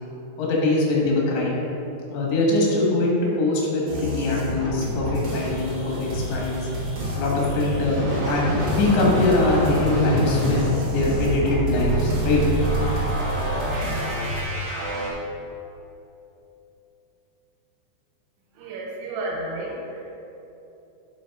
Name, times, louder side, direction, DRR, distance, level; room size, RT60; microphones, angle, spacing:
voice 1, 0.4-1.6 2.1-6.6 7.2-8.5 8.8-10.6 10.9-12.4, left 2 dB, 75° left, -3 dB, 3.7 m, -22 dB
sound 1, 3.9-14.4, left 1 dB, 50° right, 2.4 m, -30 dB
sound 2, 7.9-15.1, right 1 dB, 65° right, 1.3 m, -26 dB
voice 2, 18.6-20.0, right 2 dB, 85° right, -3 dB, 3.9 m, -32 dB
9.9 x 5.8 x 3.6 m, 3.0 s
omnidirectional pair, 5.3 m